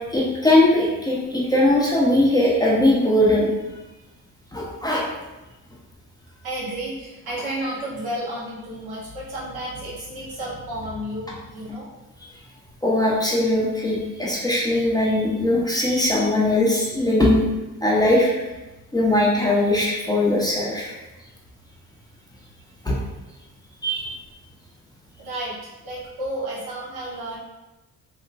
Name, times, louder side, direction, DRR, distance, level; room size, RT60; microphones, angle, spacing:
voice 1, 0.1-3.5 4.5-5.0 12.8-17.5 17.8-18.4 18.9-20.9 22.8-22.9 23.8-24.2, left 1 dB, 10° left, -5 dB, 0.8 m, -20 dB
voice 2, 6.4-11.9 12.2-12.3 25.2-27.4, right 1 dB, 80° right, -7 dB, 1.5 m, -32 dB
3.3 x 2.8 x 2.5 m, 1.0 s
cardioid pair, 80°, 37 cm